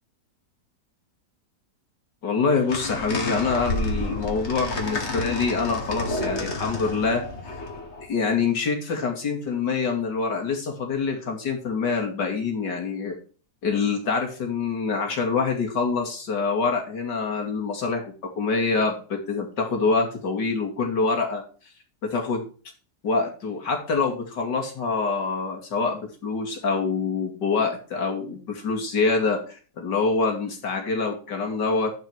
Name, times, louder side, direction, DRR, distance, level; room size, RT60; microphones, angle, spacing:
voice 1, 2.2-7.2 8.1-13.2 13.6-21.4 22.0-22.4 23.0-31.9, left 4 dB, 85° left, 3 dB, 3.1 m, -25 dB
sound 1, 2.7-8.1, left 2 dB, 40° left, 2.2 m, -30 dB
10.0 x 6.3 x 4.5 m, 0.38 s
omnidirectional pair, 1.8 m